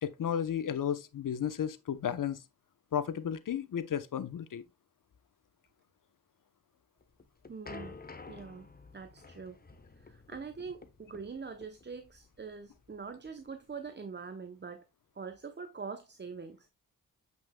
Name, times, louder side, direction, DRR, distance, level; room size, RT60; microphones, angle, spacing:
voice 1, 0.0-2.4 2.9-4.6, left 9 dB, 60° left, 0.9 m, -33 dB
sound 1, 7.0-13.9, left 4 dB, 25° left, 1.0 m, -51 dB
voice 2, 7.5-8.0 8.3-8.7 8.9-9.6 10.0-14.8 15.2-16.7, right 5 dB, 30° right, 0.8 m, -44 dB
7.6 x 5.8 x 2.2 m
cardioid pair, 60°, 37 cm